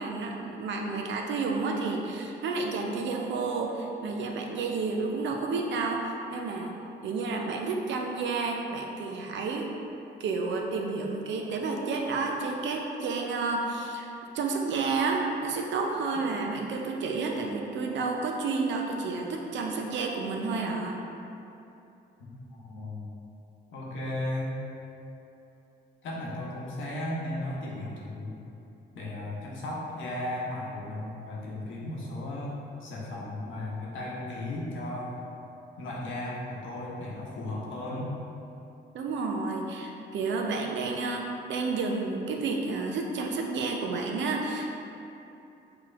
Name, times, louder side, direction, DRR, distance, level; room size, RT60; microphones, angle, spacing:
voice 1, 0.0-6.7 7.0-9.7 10.2-14.1 14.3-21.0 38.9-44.8, right 3 dB, 65° right, 1 dB, 0.6 m, -30 dB
voice 2, 22.3-23.1 23.7-24.6 26.0-28.3 28.9-32.5 32.8-35.2 35.8-38.1, left 1 dB, 80° left, -4 dB, 0.9 m, -35 dB
5.8 x 2.9 x 2.5 m, 2.9 s
cardioid pair, 90°, 20 cm